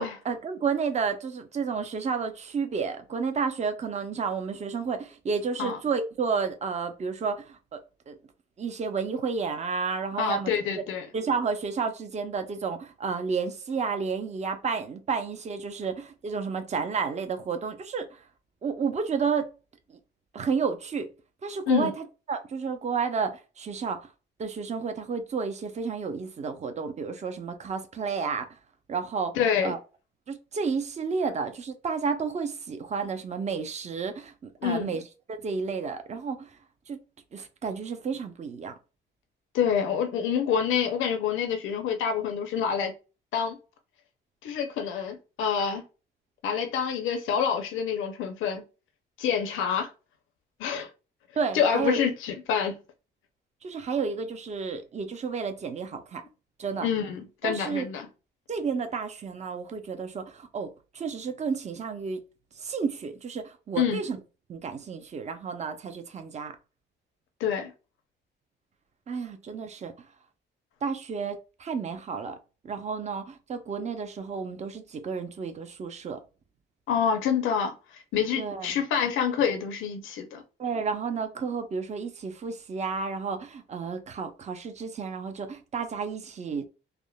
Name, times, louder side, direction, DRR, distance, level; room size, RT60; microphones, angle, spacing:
voice 1, 0.0-7.8 8.1-8.2 8.6-10.8 11.1-18.2 18.6-19.5 19.9-20.0 20.3-21.1 21.4-24.1 24.4-28.5 28.9-29.4 29.6-29.8 30.3-35.0 35.3-36.5 36.9-37.0 37.3-38.7 51.4-52.0 53.6-56.2 56.6-56.9 57.4-57.9 58.5-62.2 62.6-64.2 64.5-66.5 69.1-69.9 70.8-72.4 72.6-76.2 78.4-78.7 80.6-86.7, right 5 dB, 35° right, 0.6 m, -31 dB
voice 2, 10.2-11.1 21.7-21.9 29.4-29.7 34.6-35.0 39.5-42.9 43.3-43.6 44.4-45.8 46.4-48.6 49.2-49.9 50.6-50.9 51.5-52.7 56.8-58.1 63.8-64.0 67.4-67.7 76.9-80.4, left 7 dB, 85° left, 0.6 m, -27 dB
3.5 x 2.0 x 2.3 m
cardioid pair, 90°, 20 cm